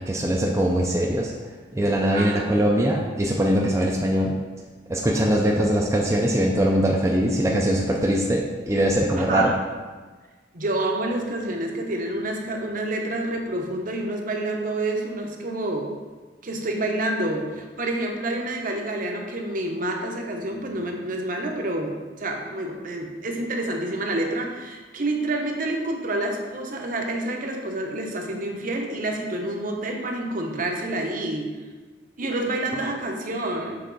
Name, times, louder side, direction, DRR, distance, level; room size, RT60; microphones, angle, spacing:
voice 1, 0.0-1.3 1.7-4.3 4.9-9.5, equal, 15° right, -2 dB, 0.4 m, -22 dB
voice 2, 2.1-2.5 9.3-9.5 10.5-15.9 16.4-31.5 32.2-33.8, right 1 dB, 45° right, 2 dB, 0.7 m, -28 dB
6.8 x 3.6 x 3.9 m, 1.4 s
head